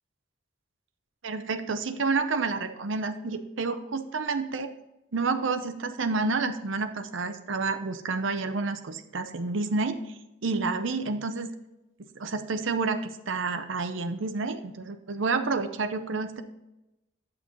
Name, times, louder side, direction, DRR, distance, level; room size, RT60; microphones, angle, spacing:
voice 1, 1.2-4.7 5.1-10.0 10.4-11.5 12.2-16.4, right 4 dB, 75° right, 8 dB, 0.7 m, -29 dB
9.0 x 6.0 x 3.9 m, 0.95 s
head